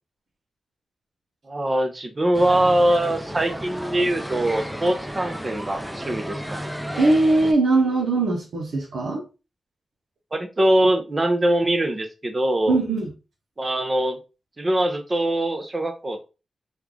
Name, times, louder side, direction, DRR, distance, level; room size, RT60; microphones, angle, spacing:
voice 1, 1.5-6.7 10.3-12.8 13.6-14.2 14.6-16.3, right 1 dB, 35° right, 0.8 m, -22 dB
sound 1, 2.3-7.5, equal, 5° right, 0.6 m, -33 dB
voice 2, 7.0-9.2 12.7-13.1, right 2 dB, 80° right, 0.7 m, -20 dB
3.1 x 2.4 x 3.7 m
cardioid pair, 45°, 0 cm